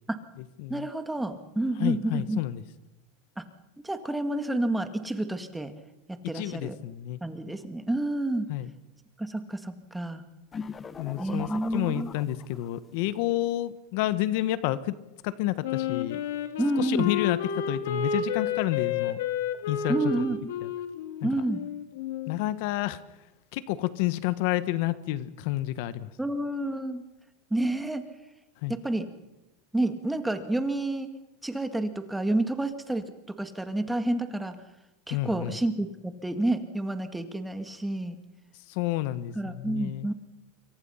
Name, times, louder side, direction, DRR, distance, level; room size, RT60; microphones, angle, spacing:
voice 1, 0.7-2.4 3.4-3.5 3.8-5.7 6.1-6.8 7.2-8.5 9.2-10.2 11.2-12.1 16.6-17.1 19.9-20.5 21.2-21.6 26.2-27.0 27.5-28.0 28.7-29.1 29.7-31.1 31.4-34.6 35.1-38.2 39.4-40.1, right 1 dB, 5° right, 8 dB, 1.9 m, -29 dB
voice 2, 1.8-2.6 6.3-7.2 8.5-8.7 11.0-14.9 15.2-16.2 16.8-19.2 19.7-20.2 20.6-20.7 21.2-21.3 22.3-23.0 23.5-26.1 28.6-28.7 35.1-35.6 38.7-40.1, left 15 dB, 60° left, 15 dB, 1.3 m, -30 dB
sound 1, 10.5-12.9, left 6 dB, 20° left, 0.9 m, -40 dB
Wind instrument woodwind instrument, 15.6-22.4, left 7 dB, 80° left, 2.8 m, -31 dB
26.5 x 23.5 x 5.7 m, 1.0 s
supercardioid pair, 135°, 0 cm